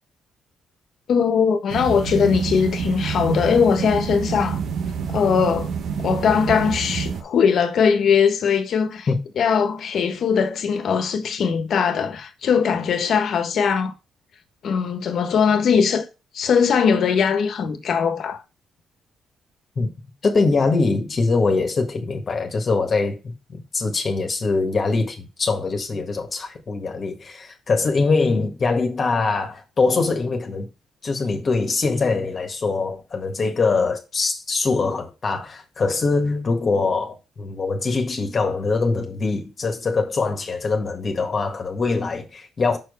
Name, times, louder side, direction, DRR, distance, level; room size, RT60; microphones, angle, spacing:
voice 1, 1.1-4.6 5.1-5.7 6.0-9.1 9.4-13.9 14.6-16.0 16.3-18.4, left 6 dB, 65° left, 1.3 m, -20 dB
sound 1, 1.7-7.2, right 6 dB, 70° right, 1.0 m, -27 dB
voice 2, 20.2-30.7 31.0-42.8, left 3 dB, 40° left, 1.6 m, -23 dB
6.2 x 4.6 x 5.2 m
cardioid pair, 90°, 0 cm